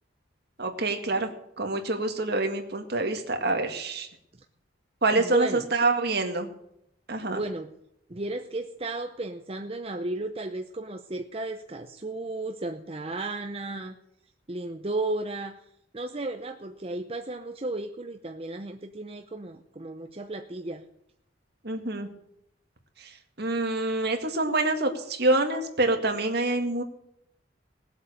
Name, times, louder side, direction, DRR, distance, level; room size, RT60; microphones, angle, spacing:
voice 1, 0.6-1.3 1.6-4.1 5.0-6.5 7.1-7.4 21.6-22.1 23.0-26.8, right 2 dB, 55° right, 5 dB, 2.1 m, -26 dB
voice 2, 5.1-5.7 7.3-7.7 8.1-14.0 14.5-15.6 15.9-20.8, right 2 dB, 30° right, 5 dB, 0.7 m, -34 dB
18.5 x 8.0 x 6.7 m, 0.77 s
head